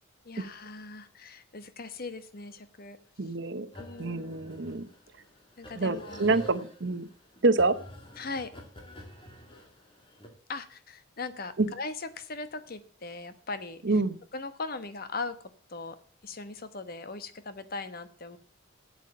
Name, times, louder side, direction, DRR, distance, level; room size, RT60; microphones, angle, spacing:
voice 1, 0.2-3.0 3.8-4.3 5.6-6.3 8.2-8.5 10.5-13.8 14.3-15.4 15.7-16.0 16.2-18.4, left 3 dB, 50° left, 11 dB, 1.1 m, -39 dB
voice 2, 3.2-3.7 4.0-4.9 5.8-7.1 7.4-7.8 11.6-11.7 13.8-14.2, right 3 dB, 60° right, 13 dB, 0.9 m, -26 dB
sound 1, 3.7-10.3, equal, 25° left, 2.4 m, -48 dB
8.4 x 8.0 x 7.4 m, 0.43 s
head